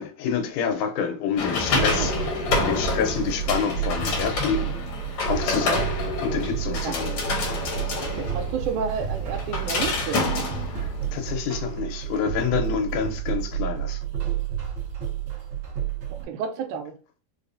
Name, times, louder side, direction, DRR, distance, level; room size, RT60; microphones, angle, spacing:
voice 1, 0.0-4.7 5.3-5.9 6.2-7.2 10.7-14.0, left 7 dB, 90° left, 2.2 m, -28 dB
sound 1, 1.4-11.4, left 4 dB, 70° left, 1.3 m, -28 dB
voice 2, 1.6-2.1 5.5-5.8 6.7-7.0 7.8-10.3 16.1-17.0, right 7 dB, 85° right, 2.1 m, -31 dB
sound 2, 1.7-16.2, right 10 dB, 60° right, 1.3 m, -31 dB
5.0 x 2.0 x 2.6 m
omnidirectional pair, 3.5 m